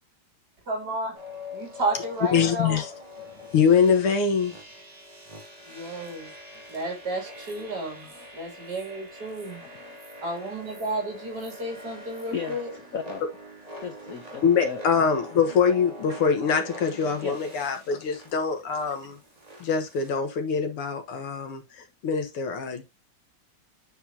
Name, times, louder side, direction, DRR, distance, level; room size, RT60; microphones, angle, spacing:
voice 1, 0.7-1.2 1.5-2.8 5.6-6.3 6.7-8.1 8.3-9.6 10.2-12.7, right 2 dB, 45° right, 3.4 m, -32 dB
sound 1, 1.1-20.1, left 1 dB, 20° right, 2.0 m, -44 dB
voice 2, 2.3-2.9 3.5-4.5 14.4-19.2 19.6-21.6 22.0-22.8, left 6 dB, 85° left, 2.2 m, -23 dB
voice 3, 9.6-10.0 12.3-13.2 13.8-14.8 17.2-17.4, left 6 dB, 70° left, 0.8 m, -35 dB
8.7 x 4.5 x 2.8 m
omnidirectional pair, 2.4 m